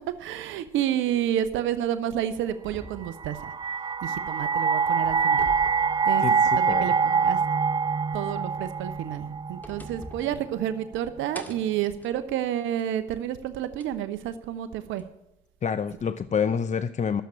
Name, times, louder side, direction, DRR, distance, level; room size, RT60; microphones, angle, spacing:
voice 1, 0.2-3.4 4.0-5.5 6.1-6.2 6.6-7.4 8.1-15.0, right 11 dB, 70° right, 12 dB, 1.0 m, -30 dB
sound 1, 2.7-4.4 4.8-6.8 7.1-7.2 8.9-11.0 11.3-13.0 13.8-13.9 15.0-15.1, equal, 10° left, 2.0 m, -46 dB
sound 2, 3.0-10.1, right 5 dB, 20° right, 0.5 m, -25 dB
voice 2, 6.2-7.0 15.6-17.2, left 7 dB, 35° left, 13 dB, 0.6 m, -28 dB
12.5 x 7.5 x 8.5 m, 0.86 s
hypercardioid pair, 60°, 21 cm